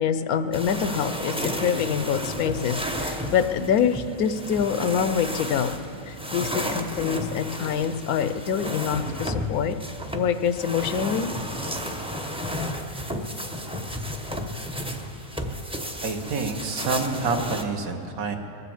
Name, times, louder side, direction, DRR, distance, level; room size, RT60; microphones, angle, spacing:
voice 1, 0.0-5.8 6.1-9.7 10.1-11.3, left 7 dB, 85° left, 10 dB, 1.2 m, -25 dB
sound 1, 0.5-17.6, equal, 5° right, 0.5 m, -32 dB
voice 2, 16.0-18.4, right 4 dB, 70° right, 5 dB, 1.5 m, -27 dB
21.0 x 8.3 x 7.1 m, 2.7 s
omnidirectional pair, 1.5 m